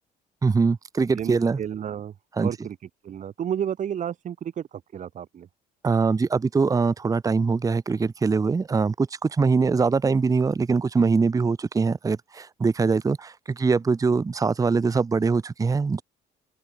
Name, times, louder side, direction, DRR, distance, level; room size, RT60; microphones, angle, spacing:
voice 1, 0.4-1.6 2.4-2.5 5.8-16.0, right 4 dB, 20° right, 0.9 m, -23 dB
voice 2, 1.1-2.8 3.0-5.5, right 9 dB, 50° right, 2.1 m, -32 dB
open air
cardioid pair, 110°, 17 cm